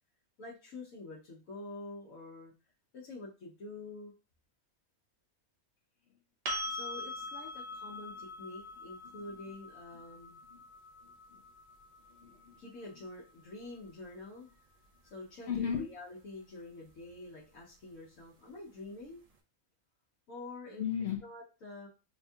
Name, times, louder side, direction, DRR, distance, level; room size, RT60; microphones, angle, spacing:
voice 1, 0.4-2.5 2.9-4.1 6.7-10.4 12.6-14.6 15.0-19.2 20.3-20.9 21.2-21.9, left 2 dB, 85° left, -5 dB, 1.3 m, -47 dB
sound 1, 6.4-14.3 17.1-17.2, left 1 dB, 55° right, 0.4 m, -43 dB
voice 2, 11.0-11.4 12.1-12.6 15.5-15.9 20.8-21.2, left 8 dB, 65° left, 3 dB, 0.8 m, -36 dB
5.9 x 2.3 x 2.6 m, 0.32 s
omnidirectional pair, 1.4 m